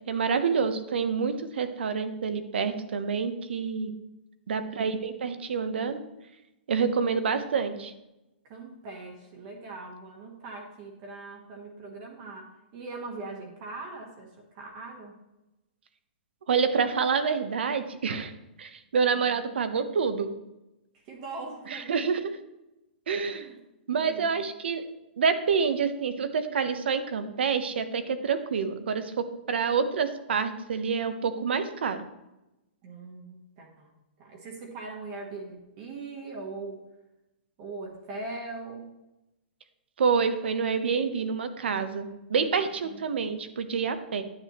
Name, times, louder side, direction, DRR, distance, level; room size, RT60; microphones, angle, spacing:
voice 1, 0.1-3.9 4.5-6.0 6.7-7.9 16.5-18.3 18.6-20.3 21.7-22.4 23.1-23.5 23.9-24.8 25.2-29.1 29.5-32.0 40.0-44.2, right 5 dB, 80° right, 10 dB, 0.9 m, -27 dB
voice 2, 4.5-5.0 8.4-15.2 19.1-19.3 20.9-21.9 23.3-23.6 24.0-24.4 32.8-36.8 37.6-38.9 42.8-43.2, right 3 dB, 30° right, 0 dB, 1.2 m, -41 dB
9.7 x 7.7 x 3.0 m, 0.96 s
hypercardioid pair, 165°, 6 cm